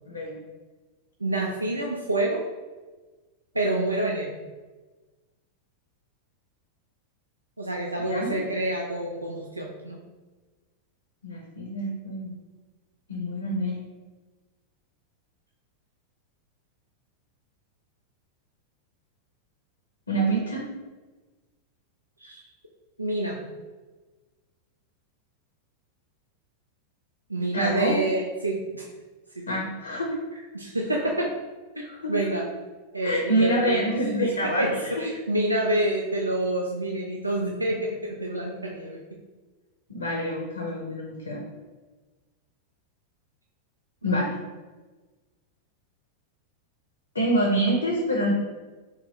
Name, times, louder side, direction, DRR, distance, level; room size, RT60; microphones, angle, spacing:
voice 1, 0.1-0.4 8.1-8.4 11.2-12.3 13.1-13.8 20.1-20.7 27.5-28.0 29.5-30.1 31.8-32.1 33.0-34.7 35.0-35.1 39.9-41.4 44.0-44.4 47.1-48.3, right 1 dB, 75° left, 0 dB, 0.6 m, -26 dB
voice 2, 1.2-2.4 3.5-4.3 7.6-10.0 22.2-22.4 23.0-23.4 27.3-28.9 29.4-29.5 30.5-31.3 31.8-32.4 32.9-33.9 34.1-34.3 34.6-39.0, right 1 dB, 85° right, -1 dB, 0.4 m, -27 dB
3.9 x 3.0 x 2.9 m, 1.3 s
figure-of-eight pair, 90°, 0 cm